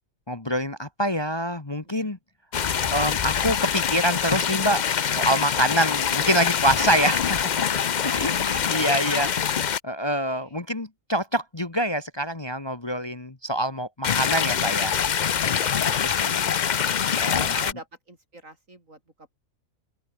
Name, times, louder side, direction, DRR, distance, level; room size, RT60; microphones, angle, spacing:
voice 1, 0.3-2.2 2.9-4.8 5.1-7.7 8.0-9.3 9.8-15.0 16.0-16.5 17.2-17.5, right 1 dB, 20° left, 1.3 m, -26 dB
voice 2, 1.8-2.2 5.2-5.4 6.8-7.0 8.7-9.6 10.3-10.6 15.3-16.4 17.3-19.3, right 2 dB, 70° right, 6.6 m, -43 dB
sound 1, 2.5-9.8 14.0-17.7, left 8 dB, 45° left, 0.6 m, -24 dB
open air
omnidirectional pair, 1.4 m